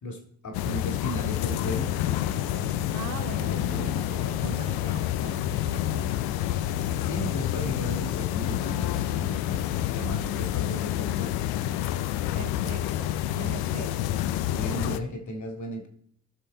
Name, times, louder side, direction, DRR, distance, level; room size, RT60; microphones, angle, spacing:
voice 1, 0.0-3.9 4.4-4.7 7.0-11.3 14.5-15.9, equal, 50° left, 3 dB, 2.3 m, -36 dB
sound 1, 0.5-15.0, left 12 dB, 75° left, 0.7 m, -28 dB
voice 2, 2.9-6.2 12.3-14.0, right 7 dB, 45° right, 10 dB, 0.9 m, -42 dB
14.0 x 5.7 x 3.9 m, 0.67 s
hypercardioid pair, 45°, 38 cm